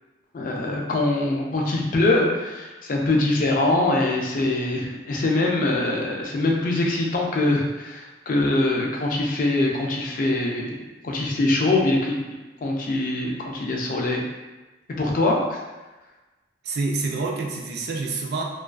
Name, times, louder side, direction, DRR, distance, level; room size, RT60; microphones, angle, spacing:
voice 1, 0.3-12.2 12.6-14.2 14.9-15.6, left 2 dB, 45° left, -1 dB, 0.4 m, -23 dB
voice 2, 16.6-18.4, right 3 dB, 60° right, 0 dB, 0.3 m, -27 dB
2.3 x 2.3 x 2.3 m, 1.2 s
head